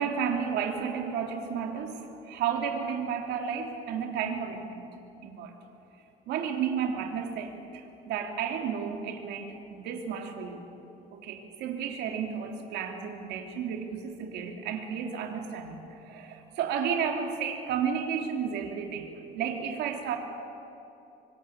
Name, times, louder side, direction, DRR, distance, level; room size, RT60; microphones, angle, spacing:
voice 1, 0.0-4.9 5.2-5.5 6.3-10.7 11.1-20.2, right 7 dB, 80° right, 3 dB, 3.0 m, -32 dB
25.0 x 25.0 x 7.2 m, 2.9 s
cardioid pair, 110°, 17 cm